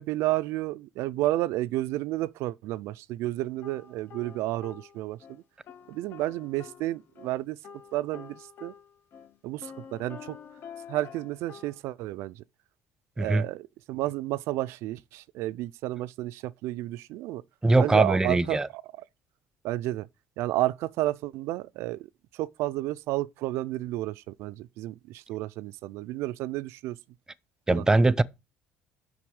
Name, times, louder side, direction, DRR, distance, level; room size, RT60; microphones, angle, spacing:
voice 1, 0.0-5.4 5.9-7.6 7.9-8.7 9.4-10.4 10.9-12.4 13.2-17.4 17.8-18.8 19.6-20.1 20.4-27.0 27.7-27.8, right 16 dB, 75° right, 0.4 m, -31 dB
sound 1, 3.6-5.4 5.7-7.4 7.6-11.8, left 7 dB, 55° left, 1.5 m, -47 dB
voice 2, 17.6-18.7 27.7-28.2, right 2 dB, 15° right, 0.5 m, -21 dB
6.0 x 5.3 x 6.3 m
cardioid pair, 100°, 5 cm